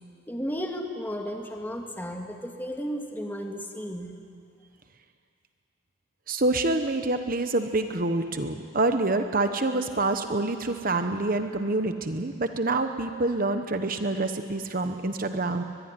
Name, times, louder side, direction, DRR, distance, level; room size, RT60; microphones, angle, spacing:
voice 1, 0.3-4.1, equal, 10° left, 2 dB, 2.1 m, -34 dB
voice 2, 6.3-15.6, right 2 dB, 45° right, 7 dB, 1.1 m, -27 dB
22.5 x 22.5 x 9.8 m, 2.3 s
head